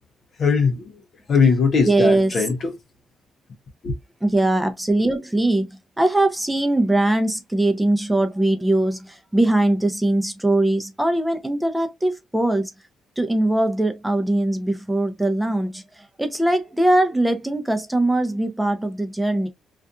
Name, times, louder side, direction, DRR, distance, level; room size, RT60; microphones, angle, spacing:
voice 1, 0.4-1.0 1.3-2.7 3.8-3.9, left 5 dB, 55° left, 0.6 m, -20 dB
voice 2, 1.9-2.4 4.2-5.7 6.0-12.7 13.2-19.5, right 1 dB, 5° right, 0.6 m, -21 dB
2.5 x 2.4 x 2.2 m
cardioid pair, 90°, 0 cm